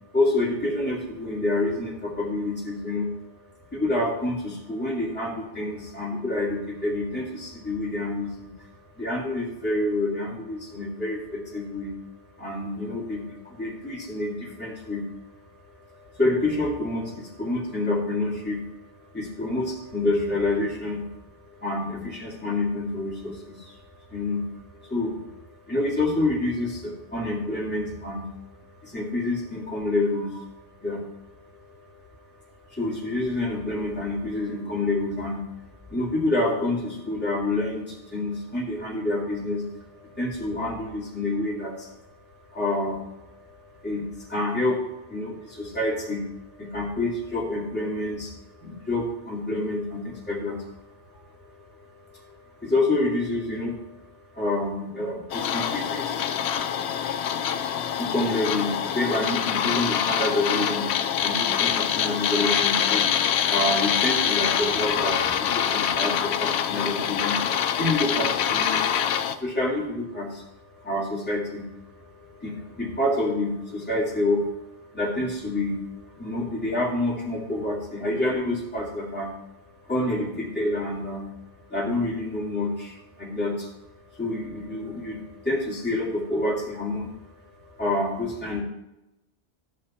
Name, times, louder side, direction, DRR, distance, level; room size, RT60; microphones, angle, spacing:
voice 1, 0.1-3.1 3.7-8.7 9.0-12.0 12.4-15.1 15.8-18.7 19.1-23.8 24.1-25.3 25.7-30.5 30.8-32.0 32.7-35.5 35.9-41.9 42.5-56.3 57.9-60.9 61.2-63.1 63.3-79.3 79.8-81.3 81.7-83.7 84.1-87.2 87.6-88.6, left 2 dB, 10° left, -5 dB, 2.3 m, -28 dB
sound 1, 55.3-69.4, left 8 dB, 75° left, 0.9 m, -25 dB
13.0 x 6.7 x 4.3 m, 0.91 s
omnidirectional pair, 1.1 m